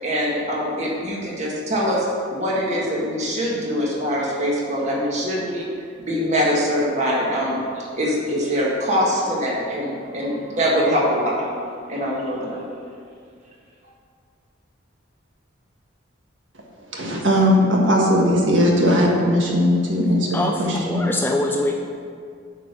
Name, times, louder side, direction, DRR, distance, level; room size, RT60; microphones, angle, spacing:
voice 1, 0.0-5.7 6.0-11.5 11.9-12.6, equal, 35° right, -4 dB, 1.7 m, -23 dB
voice 2, 16.9-21.1, equal, 70° right, -2 dB, 1.6 m, -18 dB
voice 3, 20.3-21.8, left 1 dB, 10° left, 2 dB, 0.4 m, -23 dB
9.0 x 5.2 x 6.1 m, 2.3 s
head